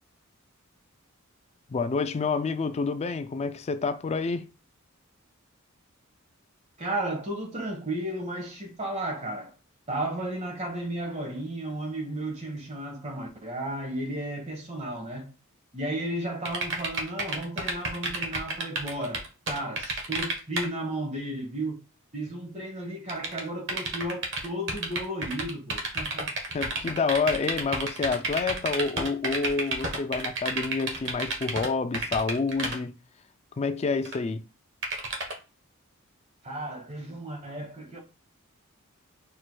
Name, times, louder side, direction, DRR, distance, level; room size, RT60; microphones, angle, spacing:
voice 1, 1.7-4.5 26.5-33.0 33.6-34.4, left 4 dB, 30° left, 0.3 m, -28 dB
voice 2, 6.8-9.5 9.9-15.3 15.7-21.8 22.1-26.3 36.4-38.0, right 1 dB, 30° right, 1.2 m, -34 dB
sound 1, 16.4-20.7 23.1-31.7 31.9-32.8 34.0-34.1 34.8-35.3, right 3 dB, 55° right, 1.1 m, -30 dB
4.5 x 4.4 x 2.2 m
head